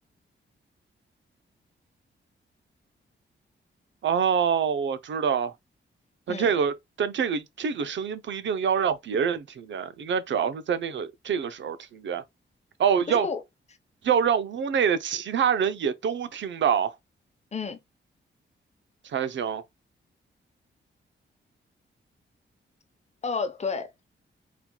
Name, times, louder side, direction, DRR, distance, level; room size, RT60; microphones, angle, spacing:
voice 1, 4.0-5.5 6.3-12.2 12.8-13.3 14.0-16.9 19.0-19.6, right 7 dB, 70° right, 0.6 m, -26 dB
voice 2, 13.1-13.4 17.5-17.8 23.2-24.1, left 5 dB, 35° left, 0.8 m, -31 dB
4.4 x 4.2 x 2.2 m
wide cardioid pair, 150°, 20 cm